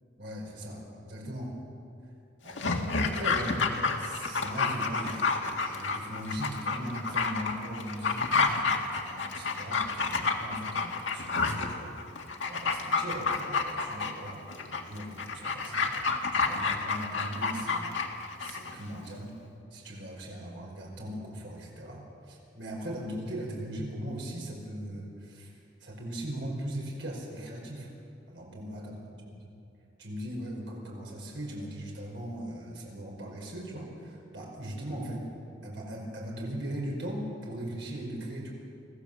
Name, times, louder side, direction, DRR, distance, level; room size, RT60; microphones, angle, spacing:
voice 1, 0.2-1.6 2.4-3.6 4.0-12.0 12.4-15.9 16.3-18.0 18.4-19.3 19.7-25.5 25.8-27.9 28.3-29.0 29.4-29.5 30.0-35.3 35.6-38.5, right 1 dB, 70° right, -2 dB, 5.3 m, -39 dB
Dog, 2.5-18.7 19.0-19.1, left 4 dB, 85° left, 1.9 m, -30 dB
24.5 x 15.5 x 7.6 m, 2.6 s
head